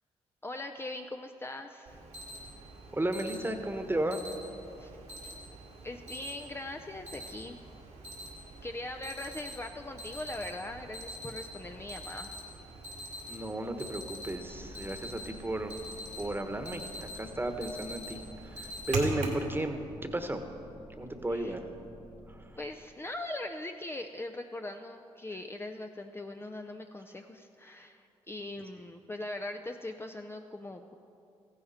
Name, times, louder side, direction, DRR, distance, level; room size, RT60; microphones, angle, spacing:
voice 1, 0.4-2.0 4.8-4.9 5.2-5.3 5.8-7.6 8.6-12.3 21.3-21.6 22.6-30.9, left 2 dB, 20° left, 5 dB, 0.6 m, -41 dB
Alarm, 1.9-19.5, right 2 dB, 80° right, 2.1 m, -43 dB
voice 2, 2.9-4.2 13.3-15.8 16.2-20.4 21.0-21.6 22.3-22.4, right 1 dB, 15° right, 7 dB, 1.3 m, -34 dB
sound 1, 14.4-22.4, left 1 dB, 80° left, 3.2 m, -52 dB
14.5 x 11.0 x 4.3 m, 2.6 s
supercardioid pair, 55°, 12 cm